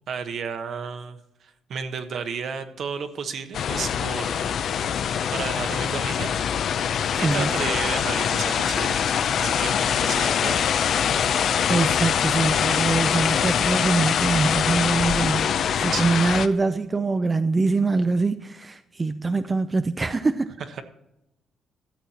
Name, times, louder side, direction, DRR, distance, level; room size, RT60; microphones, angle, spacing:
voice 1, 0.1-4.7 5.0-6.4 7.2-9.0 9.3-10.6 15.9-16.2, right 6 dB, 60° right, 1.2 m, -32 dB
sound 1, 3.5-16.5, left 8 dB, 65° left, 0.6 m, -23 dB
voice 2, 7.1-7.5 11.7-20.5, right 3 dB, 25° right, 0.5 m, -24 dB
13.0 x 7.8 x 4.3 m
cardioid pair, 90°, 0 cm